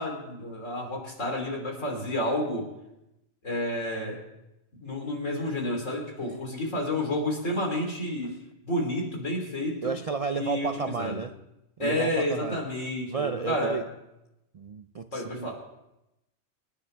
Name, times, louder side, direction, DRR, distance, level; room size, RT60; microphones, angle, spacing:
voice 1, 0.0-2.6 3.4-4.2 4.8-8.3 8.6-10.0 10.3-11.2 11.8-13.8 15.1-15.5, left 1 dB, 85° left, 0 dB, 3.8 m, -30 dB
voice 2, 9.8-11.4 11.8-12.6 13.1-13.8 14.5-15.5, right 5 dB, 65° right, 9 dB, 0.3 m, -32 dB
25.5 x 10.5 x 3.4 m, 0.90 s
omnidirectional pair, 1.3 m